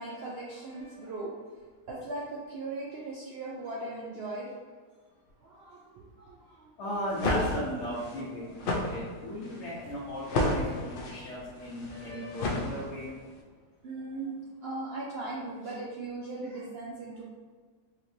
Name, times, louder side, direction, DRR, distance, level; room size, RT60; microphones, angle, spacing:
voice 1, 0.0-1.4 1.9-4.6 5.4-6.7 8.4-8.5 9.3-9.4 11.9-12.5 13.8-14.3 14.6-17.2, right 2 dB, 80° right, -4 dB, 0.5 m, -39 dB
voice 2, 6.8-13.1, equal, 55° left, -8 dB, 1.0 m, -36 dB
sound 1, 6.9-13.2, left 2 dB, 90° left, 0.4 m, -32 dB
4.3 x 3.0 x 2.6 m, 1.5 s
omnidirectional pair, 1.6 m